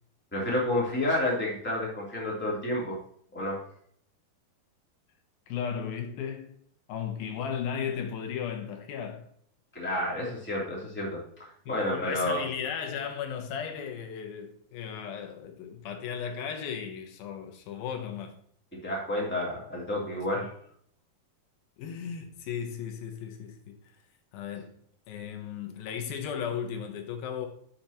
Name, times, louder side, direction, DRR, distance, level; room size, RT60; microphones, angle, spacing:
voice 1, 0.3-3.0 3.3-3.6 9.7-11.2 11.7-12.4 18.8-20.5, left 1 dB, 5° left, 2.5 m, -30 dB
voice 2, 5.5-6.5 6.9-9.3 11.7-18.4 21.8-24.0 24.3-24.7 25.1-27.5, left 7 dB, 80° left, 2.8 m, -35 dB
12.0 x 5.9 x 3.0 m
omnidirectional pair, 4.2 m